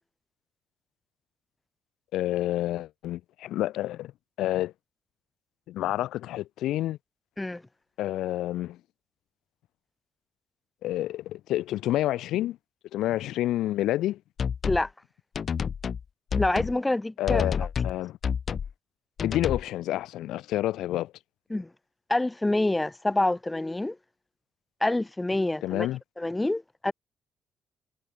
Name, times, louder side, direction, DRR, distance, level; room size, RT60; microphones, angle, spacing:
voice 1, 2.1-4.1 4.4-4.7 5.7-7.0 8.0-8.8 10.8-12.6 12.9-14.2 17.2-18.2 19.2-21.1 25.6-26.0, left 14 dB, 85° left, 2.9 m, -29 dB
sound 1, 14.4-14.9 15.4-16.0 16.3-16.8 17.3-18.0 18.2-18.7 19.2-19.7, left 7 dB, 50° left, 2.6 m, -29 dB
voice 2, 16.3-17.4 21.5-21.7 22.1-24.0 24.8-25.9 26.2-26.9, left 2 dB, 15° left, 3.4 m, -26 dB
cardioid pair, 90°, 0 cm